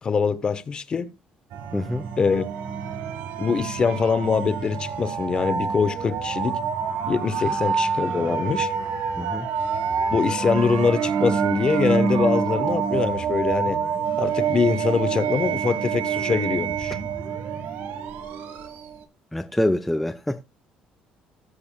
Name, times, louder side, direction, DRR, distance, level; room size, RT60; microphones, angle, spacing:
voice 1, 0.0-1.1 2.2-2.4 3.4-6.6 7.1-8.7 10.1-13.8 14.2-17.0, left 5 dB, 30° left, 1.0 m, -23 dB
sound 1, 1.5-19.0, right 6 dB, 80° right, 1.5 m, -27 dB
voice 2, 1.7-2.0 7.5-7.6 9.2-9.5 19.3-20.4, left 1 dB, 5° left, 0.5 m, -25 dB
19.0 x 6.9 x 2.2 m
cardioid pair, 140°, 3 cm